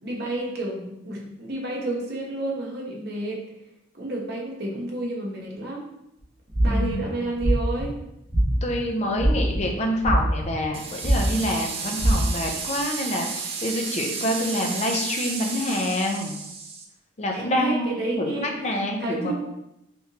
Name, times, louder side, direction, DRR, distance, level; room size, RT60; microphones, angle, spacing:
voice 1, 0.0-3.4 3.9-5.9 6.6-7.9 17.3-19.3, right 2 dB, 55° right, -2 dB, 1.0 m, -30 dB
sound 1, 6.5-7.0 7.4-7.8 8.3-8.7 9.1-9.6 10.0-10.7 11.0-11.4 12.0-12.1, right 1 dB, 10° right, 1.2 m, -21 dB
voice 2, 6.7-7.0 8.5-13.3 13.6-16.4 17.2-19.3, left 1 dB, 35° left, 2 dB, 0.6 m, -27 dB
sound 2, 10.7-16.8, right 4 dB, 30° right, 0.5 m, -33 dB
4.3 x 3.6 x 2.8 m, 0.85 s
head